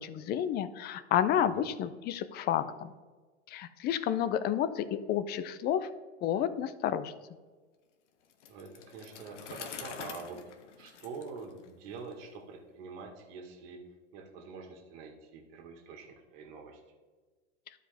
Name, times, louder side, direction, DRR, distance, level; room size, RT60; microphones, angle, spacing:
voice 1, 0.0-2.9 3.5-5.9 6.2-7.1, left 10 dB, 30° left, 13 dB, 0.5 m, -30 dB
Bicycle, 8.3-12.1, left 7 dB, 80° left, 1.1 m, -46 dB
voice 2, 8.5-13.8 14.1-16.8, right 4 dB, 55° right, 3 dB, 1.8 m, -46 dB
12.5 x 5.0 x 3.4 m, 1.4 s
hypercardioid pair, 120°, 35 cm